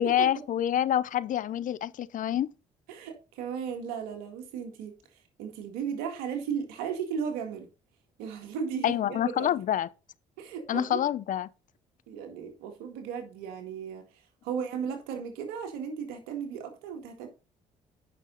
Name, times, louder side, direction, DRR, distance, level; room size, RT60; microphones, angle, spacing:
voice 1, 0.0-2.5 8.8-9.9 10.7-11.5, left 11 dB, 60° left, 0.6 m, -27 dB
voice 2, 2.9-4.9 5.4-7.7 8.2-9.5 10.4-11.0 12.1-14.1 14.4-17.3, right 7 dB, 85° right, 2.0 m, -35 dB
9.2 x 6.1 x 4.0 m
supercardioid pair, 55°, 15 cm